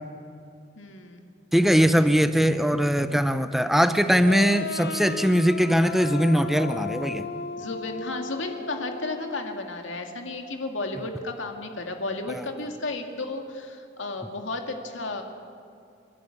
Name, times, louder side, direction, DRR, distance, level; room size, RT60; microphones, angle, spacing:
voice 1, 0.8-1.3 7.6-15.2, left 2 dB, 75° left, 4 dB, 2.2 m, -33 dB
voice 2, 1.5-7.2 12.3-12.4, equal, ahead, 10 dB, 0.8 m, -21 dB
sound 1, 4.3-9.8, left 4 dB, 55° left, 0.8 m, -35 dB
30.0 x 12.0 x 8.6 m, 2.5 s
head